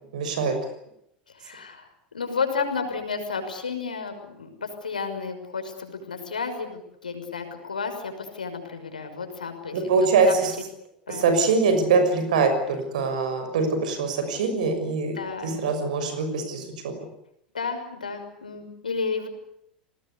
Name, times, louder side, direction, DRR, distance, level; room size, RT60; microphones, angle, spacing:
voice 1, 0.1-0.6 9.7-10.6 11.1-15.2 15.4-17.1, right 4 dB, 65° right, 8 dB, 6.5 m, -23 dB
voice 2, 1.3-1.9 2.1-9.8 10.3-10.4 11.1-11.3 15.2-15.6 17.5-19.3, left 5 dB, 80° left, 6 dB, 6.0 m, -32 dB
29.5 x 20.5 x 8.4 m, 0.75 s
figure-of-eight pair, 80°, 4 cm